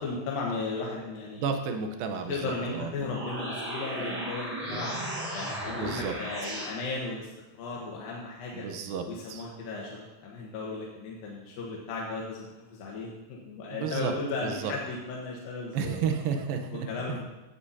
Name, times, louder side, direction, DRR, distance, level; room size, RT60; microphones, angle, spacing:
voice 1, 0.0-1.5 2.3-4.9 5.3-7.3 7.5-8.7 9.1-16.0 16.7-17.4, left 3 dB, 85° left, -3 dB, 3.0 m, -35 dB
voice 2, 1.4-2.9 5.7-6.1 8.5-9.0 9.3-9.4 13.7-14.1 14.4-14.7 15.7-16.9, right 6 dB, 85° right, 6 dB, 2.7 m, -32 dB
sound 1, 2.9-6.7, right 1 dB, 25° right, 0.7 m, -35 dB
16.5 x 9.9 x 2.8 m, 1.1 s
omnidirectional pair, 4.0 m